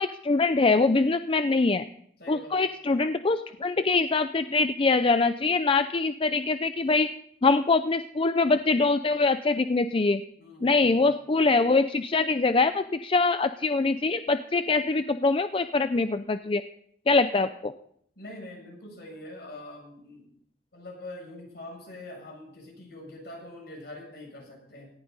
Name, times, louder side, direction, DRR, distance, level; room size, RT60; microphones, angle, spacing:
voice 1, 0.0-1.8 2.3-7.1 7.4-10.2 10.6-16.6 17.1-17.7, left 3 dB, 30° left, 10 dB, 0.5 m, -23 dB
voice 2, 2.2-2.5 10.4-11.1 18.2-20.2 20.7-24.9, left 1 dB, 65° left, 0 dB, 7.4 m, -44 dB
18.5 x 14.5 x 4.1 m, 0.68 s
head